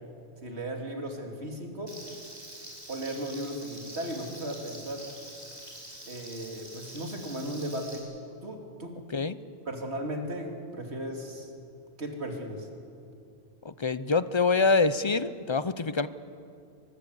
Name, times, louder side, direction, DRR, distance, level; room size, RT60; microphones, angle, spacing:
voice 1, 0.4-1.9 2.9-5.1 6.1-8.1 8.4-8.9 9.7-11.5 12.0-12.7, right 1 dB, 75° right, 3 dB, 2.9 m, -36 dB
Frying (food), 1.9-8.0, right 1 dB, 40° right, 5.8 m, -46 dB
voice 2, 13.6-16.1, left 4 dB, 35° left, 15 dB, 0.5 m, -25 dB
24.5 x 20.5 x 8.1 m, 2.5 s
omnidirectional pair, 1.1 m